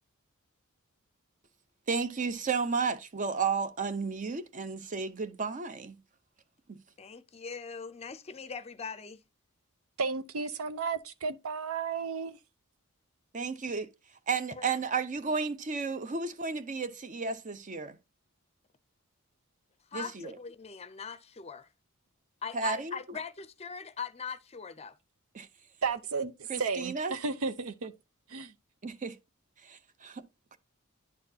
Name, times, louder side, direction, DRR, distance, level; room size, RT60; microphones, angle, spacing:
voice 1, 1.9-6.0 6.7-6.8 13.3-13.9 14.3-18.0 19.9-20.4 22.5-23.0 25.3-25.5 26.5-27.1 28.8-29.2 29.6-30.2, right 5 dB, 35° right, 0.7 m, -33 dB
voice 2, 7.0-9.2 14.5-14.6 19.9-21.7 22.4-25.0, left 6 dB, 30° left, 0.5 m, -41 dB
voice 3, 10.0-12.4 25.8-27.9 28.3-28.5, right 5 dB, 75° right, 0.7 m, -33 dB
10.5 x 4.2 x 2.7 m
head